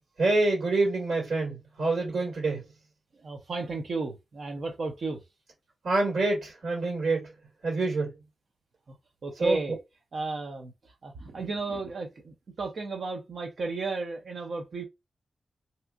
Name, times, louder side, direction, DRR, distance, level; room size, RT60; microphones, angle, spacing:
voice 1, 0.2-2.6 5.8-7.3 7.6-8.1 9.4-9.6, right 2 dB, 75° right, 1.7 m, -26 dB
voice 2, 3.2-5.2 8.9-9.0 9.2-9.8 10.1-14.9, right 3 dB, 50° right, 0.5 m, -33 dB
3.4 x 2.7 x 2.3 m
wide cardioid pair, 170°, 0 cm